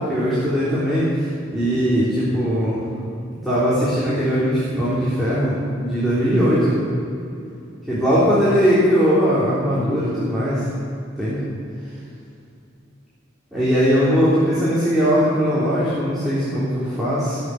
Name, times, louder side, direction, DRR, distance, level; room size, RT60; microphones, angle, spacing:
voice 1, 0.0-2.8 3.4-6.8 7.9-10.6 11.2-11.4 13.5-17.4, equal, ahead, -11 dB, 3.7 m, -20 dB
19.0 x 8.1 x 8.3 m, 2.6 s
head